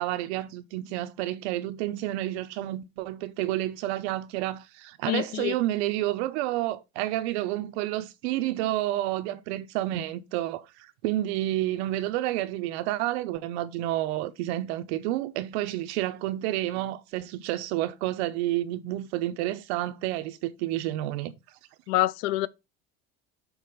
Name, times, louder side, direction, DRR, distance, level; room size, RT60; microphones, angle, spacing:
voice 1, 0.0-21.3, right 15 dB, 90° right, 0.9 m, -30 dB
voice 2, 5.1-5.6 21.9-22.5, left 15 dB, 55° left, 0.6 m, -26 dB
6.5 x 4.1 x 4.9 m
cardioid pair, 170°, 32 cm